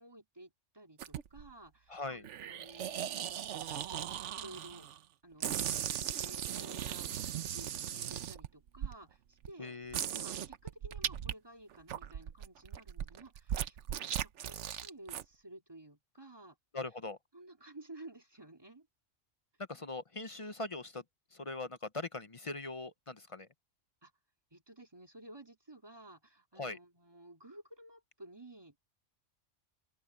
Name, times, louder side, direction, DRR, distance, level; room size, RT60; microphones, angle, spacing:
voice 1, 0.0-4.9 5.2-9.8 10.1-16.6 17.3-18.9 19.7-19.9 24.0-24.1 24.5-28.8, right 1 dB, 20° right, 2.7 m, -54 dB
sound 1, 1.0-1.5 2.2-5.0 5.4-8.9 9.5-9.6 9.9-11.3 11.7-15.2, right 10 dB, 80° right, 1.1 m, -38 dB
voice 2, 1.9-2.2 9.6-10.0 16.7-17.2 19.7-21.0 21.3-23.5 26.6-26.8, left 3 dB, 35° left, 0.7 m, -41 dB
open air
omnidirectional pair, 1.2 m